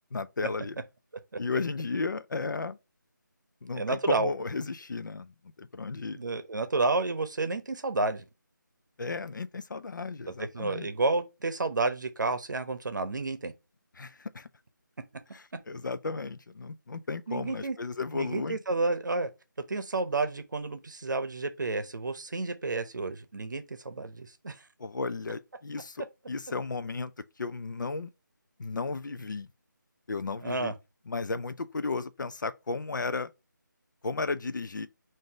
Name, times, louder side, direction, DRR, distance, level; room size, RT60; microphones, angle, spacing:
voice 1, 0.1-0.8 1.4-2.8 3.6-6.2 9.0-10.9 14.0-14.5 15.3-18.6 24.8-27.1 27.4-28.1 28.6-29.5 30.1-30.7 31.1-33.3 34.0-34.9, left 4 dB, 70° left, 0.4 m, -34 dB
voice 2, 3.7-4.3 6.1-8.2 10.4-13.5 15.1-15.2 17.3-17.8 18.1-19.3 19.7-24.6 30.4-30.7, right 3 dB, 65° right, 0.7 m, -30 dB
3.8 x 2.6 x 3.5 m
figure-of-eight pair, 165°, 11 cm